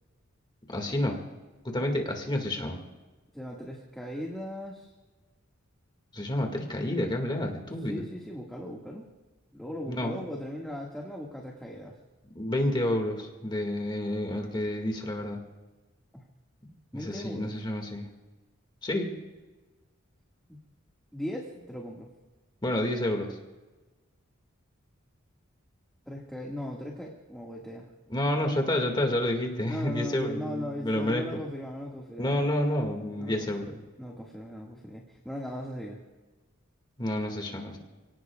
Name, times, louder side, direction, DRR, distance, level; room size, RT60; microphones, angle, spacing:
voice 1, 0.7-1.2 1.6-2.8 6.1-8.0 9.9-10.2 12.3-15.4 16.9-18.1 18.8-19.1 22.6-23.4 28.1-31.2 32.2-33.8 37.0-37.8, left 1 dB, 20° left, 2 dB, 2.1 m, -29 dB
voice 2, 3.3-4.9 7.9-9.0 9.5-12.0 16.1-16.2 16.9-17.5 20.5-20.6 21.1-22.1 26.1-27.9 29.7-32.4 33.2-33.7 34.0-36.0, left 1 dB, ahead, -2 dB, 1.9 m, -38 dB
29.5 x 18.0 x 2.4 m, 1.2 s
head